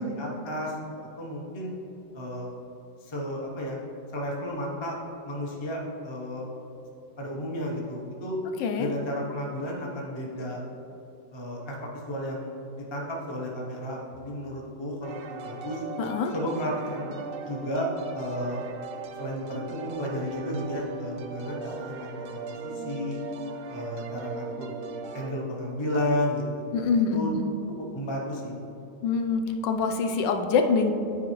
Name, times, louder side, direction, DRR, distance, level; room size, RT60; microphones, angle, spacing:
voice 1, 0.0-1.7 2.1-2.5 3.0-3.8 4.1-5.0 5.2-6.4 7.2-8.4 8.8-10.6 11.3-11.8 12.1-15.8 16.3-17.2 17.4-18.6 19.1-23.2 23.7-24.7 25.1-26.4 27.1-27.3 27.8-28.5, left 1 dB, 30° left, -2 dB, 0.5 m, -33 dB
voice 2, 8.6-8.9 16.0-16.3 26.7-27.5 29.0-30.9, left 5 dB, 90° left, 4 dB, 1.3 m, -25 dB
sound 1, 15.0-25.3, right 4 dB, 90° right, 1.3 m, -38 dB
9.5 x 4.7 x 3.1 m, 2.9 s
omnidirectional pair, 1.9 m